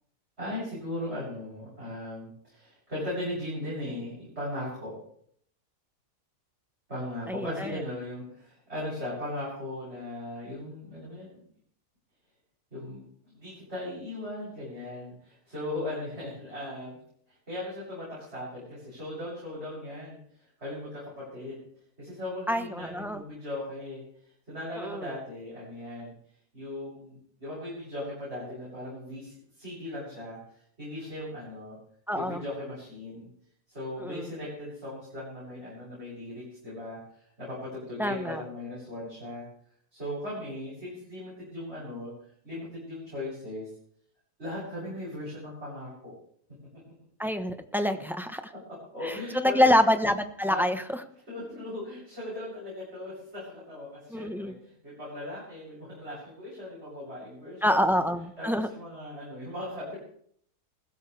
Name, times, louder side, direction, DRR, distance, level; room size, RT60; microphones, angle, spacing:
voice 1, 0.4-5.0 6.9-11.4 12.7-13.1 13.3-17.0 17.3-21.6 22.0-24.0 24.5-26.1 26.5-31.8 32.1-33.3 33.7-39.5 39.9-42.1 42.4-43.7 44.4-46.1 48.9-49.8 50.4-50.7 51.3-57.8 58.4-60.0, left 1 dB, 40° right, -8 dB, 8.5 m, -38 dB
voice 2, 7.3-7.7 22.5-23.2 24.8-25.1 32.1-32.4 34.0-34.2 38.0-38.4 47.2-48.4 49.4-50.8 54.1-54.5 57.6-58.7, left 1 dB, ahead, 8 dB, 0.8 m, -26 dB
21.0 x 16.0 x 3.4 m, 0.63 s
omnidirectional pair, 1.7 m